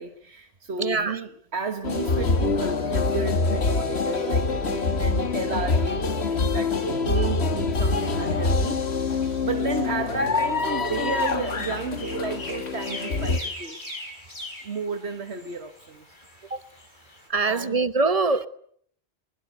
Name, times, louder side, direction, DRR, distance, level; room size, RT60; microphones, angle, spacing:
voice 1, 0.0-8.8 9.4-13.9 14.6-16.1 17.4-17.9, right 4 dB, 80° right, 7 dB, 1.8 m, -33 dB
voice 2, 0.8-1.2 16.5-16.6 17.3-18.5, right 3 dB, 35° right, 13 dB, 1.1 m, -23 dB
sound 1, 1.8-13.4, left 4 dB, 75° left, 2.0 m, -25 dB
sound 2, 7.8-17.3, left 2 dB, 45° left, 6.0 m, -42 dB
23.0 x 21.0 x 8.2 m, 0.64 s
omnidirectional pair, 1.1 m